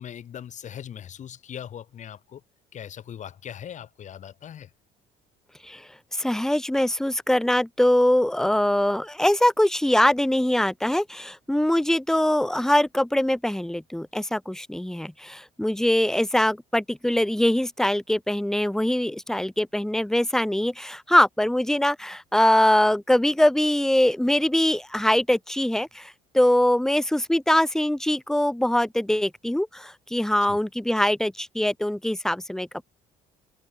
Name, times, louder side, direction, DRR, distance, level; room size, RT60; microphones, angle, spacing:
voice 1, 0.0-2.4 2.7-4.7 30.5-30.6, left 9 dB, 45° left, 1.1 m, -40 dB
voice 2, 5.6-32.8, left 1 dB, 5° left, 0.8 m, -23 dB
cardioid pair, 110°, 17 cm